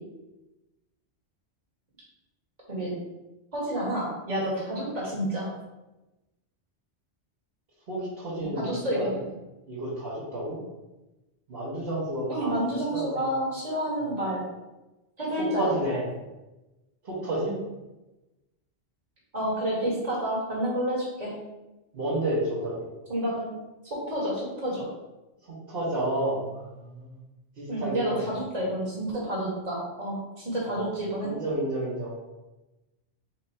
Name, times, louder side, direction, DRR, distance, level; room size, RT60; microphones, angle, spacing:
voice 1, 3.5-5.5 8.6-9.2 12.3-14.4 15.2-15.7 19.3-21.3 23.1-23.5 23.8-24.9 27.7-31.3, right 1 dB, 35° right, -7 dB, 1.7 m, -29 dB
voice 2, 7.9-9.1 9.7-10.6 11.5-13.2 14.0-14.1 15.4-16.1 17.0-17.5 21.9-22.9 25.7-27.2 27.6-28.3 30.7-30.9 31.2-32.1, right 1 dB, 55° right, -9 dB, 1.3 m, -31 dB
4.5 x 2.4 x 4.2 m, 1.0 s
omnidirectional pair, 1.2 m